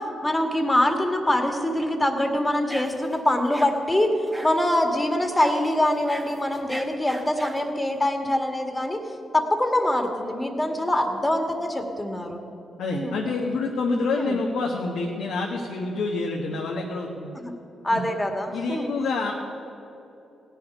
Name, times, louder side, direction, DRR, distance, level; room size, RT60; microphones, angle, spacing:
voice 1, 0.0-12.4 12.9-13.1 14.1-14.4 17.4-17.5 17.8-18.9, left 1 dB, 15° left, 4 dB, 1.9 m, -24 dB
sound 1, 2.7-3.2 3.5-3.7 4.3-4.6 5.4-5.6 5.9-7.7, right 1 dB, 10° right, 1.6 m, -37 dB
voice 2, 12.8-17.3 17.9-18.0 18.5-19.3, left 3 dB, 80° left, -1 dB, 1.2 m, -27 dB
16.5 x 5.8 x 9.6 m, 2.8 s
supercardioid pair, 55°, 0 cm